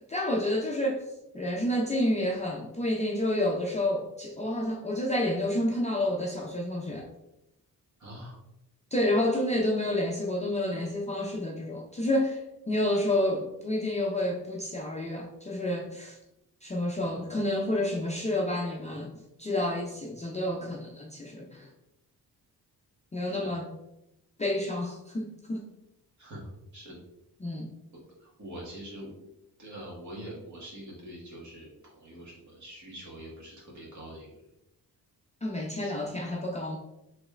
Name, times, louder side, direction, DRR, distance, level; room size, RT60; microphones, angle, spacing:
voice 1, 0.1-1.1 1.3-7.1 8.9-12.4 12.7-16.2 16.6-21.7 23.1-23.7 24.4-25.6 27.4-27.7 35.4-36.8, left 1 dB, 20° left, -2 dB, 0.4 m, -29 dB
voice 2, 8.0-8.4 17.0-17.2 23.3-23.5 26.2-27.0 27.9-29.2 29.6-34.4 35.8-35.9, right 1 dB, 50° right, -3 dB, 1.5 m, -44 dB
5.0 x 3.1 x 2.4 m, 0.88 s
wide cardioid pair, 145°, 39 cm